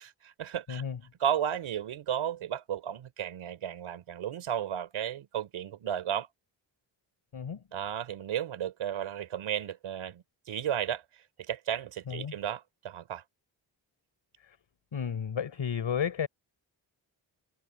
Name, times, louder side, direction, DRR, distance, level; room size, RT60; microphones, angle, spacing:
voice 1, 0.0-0.8 1.2-6.3 7.7-11.0 11.5-13.2, right 9 dB, 90° right, 4.1 m, -34 dB
voice 2, 0.7-1.0 7.3-7.6 12.1-12.4 14.4-14.6 14.9-16.3, left 7 dB, 70° left, 4.5 m, -33 dB
supercardioid pair, 45°, 47 cm